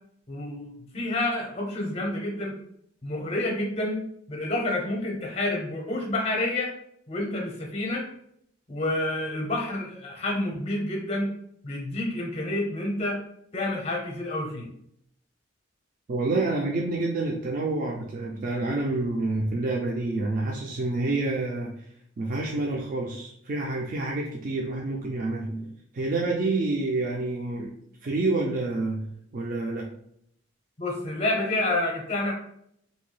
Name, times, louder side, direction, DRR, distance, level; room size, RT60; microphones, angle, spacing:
voice 1, 0.3-0.7 0.9-2.6 3.0-4.0 4.3-6.7 7.1-8.0 8.7-11.4 11.6-13.2 13.5-14.7 30.8-32.3, left 1 dB, 30° left, 0 dB, 0.6 m, -28 dB
voice 2, 16.1-21.8 22.2-27.7 28.0-29.9, right 2 dB, 45° right, -1 dB, 0.3 m, -28 dB
2.7 x 2.2 x 3.2 m, 0.70 s
head